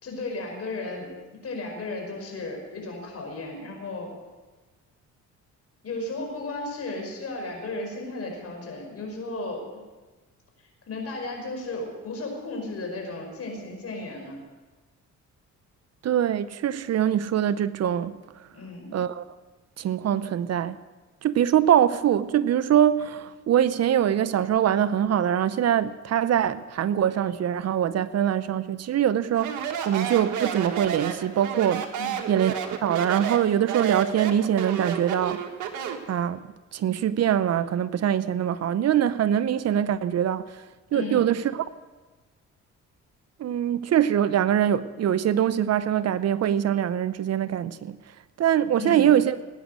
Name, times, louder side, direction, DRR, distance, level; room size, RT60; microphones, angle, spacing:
voice 1, 0.0-1.1 1.4-4.1 5.8-9.6 10.6-14.4 18.5-19.0 32.0-32.3 40.9-41.3 48.8-49.1, left 2 dB, 55° left, 5.4 m, -34 dB
voice 2, 16.0-18.1 18.9-19.2 19.8-20.8 21.2-31.9 32.3-35.4 36.1-36.4 36.7-40.5 40.9-41.7 43.4-48.0 48.4-49.4, right 10 dB, 55° right, 0.7 m, -23 dB
Speech, 29.3-36.1, right 8 dB, 80° right, 1.6 m, -31 dB
19.0 x 9.5 x 6.5 m
cardioid pair, 90°, 30 cm